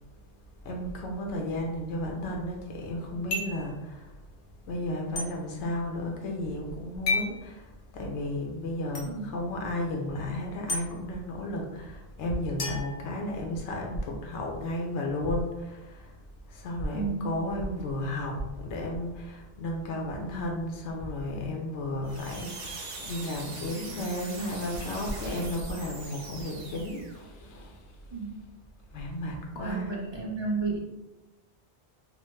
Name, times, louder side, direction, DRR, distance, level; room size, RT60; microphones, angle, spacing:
voice 1, 0.6-4.2 4.7-16.2 16.5-28.3 28.9-30.0, left 1 dB, 85° left, 0 dB, 0.9 m, -33 dB
sound 1, 3.3-3.7 5.2-5.3 7.1-7.4 8.9-9.1 10.7-10.8 12.6-13.7, left 3 dB, 50° left, 0.8 m, -31 dB
voice 2, 16.9-17.4 28.1-28.4 29.6-30.8, right 4 dB, 45° right, -3 dB, 0.3 m, -32 dB
sound 2, 22.0-27.2, right 3 dB, 60° right, 0.8 m, -42 dB
3.0 x 2.0 x 3.0 m, 1.0 s
omnidirectional pair, 1.1 m